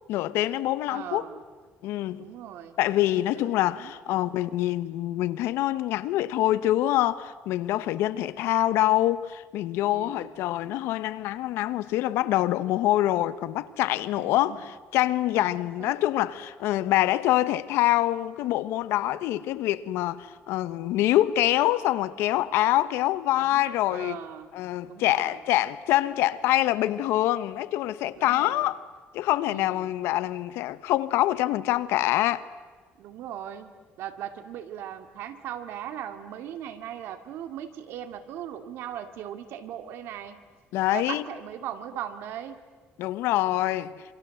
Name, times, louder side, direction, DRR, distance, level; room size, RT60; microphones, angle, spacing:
voice 1, 0.1-1.3 1.8-2.3 2.8-24.2 24.5-28.8 29.1-32.4 40.7-41.3 43.0-43.9, left 14 dB, 85° left, 1.1 m, -25 dB
voice 2, 0.9-1.4 2.2-2.8 3.8-3.9 4.2-4.3 9.9-10.3 14.5-14.6 15.3-15.5 15.8-15.9 23.5-24.5 24.9-25.3 28.2-28.6 29.5-29.7 33.0-33.7 34.0-40.4 40.9-42.6, right 10 dB, 70° right, 2.3 m, -38 dB
27.5 x 25.5 x 7.9 m
cardioid pair, 140°, 4 cm